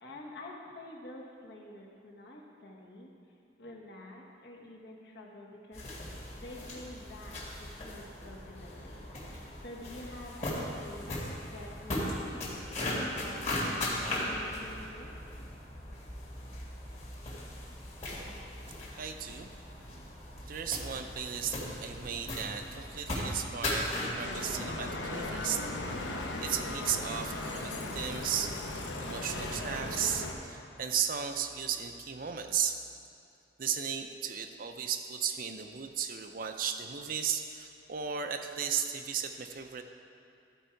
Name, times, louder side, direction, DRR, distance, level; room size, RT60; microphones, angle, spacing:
voice 1, 0.0-3.1 3.6-9.1 9.6-15.1, left 1 dB, 60° left, -2 dB, 1.2 m, -48 dB
sound 1, 5.7-24.2, left 1 dB, 40° left, 1.9 m, -38 dB
voice 2, 19.0-19.5 20.5-32.8 33.6-39.8, right 8 dB, 50° right, 7 dB, 0.5 m, -35 dB
Bicycle, 24.2-30.3, left 2 dB, 80° left, 0.9 m, -37 dB
13.5 x 4.7 x 4.5 m, 2.5 s
head